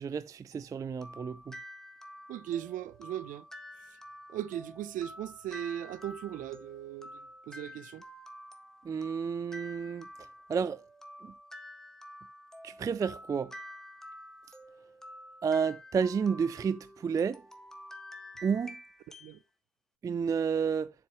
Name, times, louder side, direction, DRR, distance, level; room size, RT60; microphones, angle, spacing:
voice 1, 0.0-1.6 8.8-10.0 10.5-10.8 12.6-13.5 15.4-17.4 18.4-18.8 20.0-20.9, right 6 dB, 15° right, 0.4 m, -31 dB
sound 1, 0.5-19.4, equal, ahead, 1.5 m, -49 dB
voice 2, 2.3-3.4 4.3-8.1 19.2-19.4, right 11 dB, 40° right, 0.8 m, -38 dB
8.1 x 7.1 x 3.2 m
hypercardioid pair, 85°, 20 cm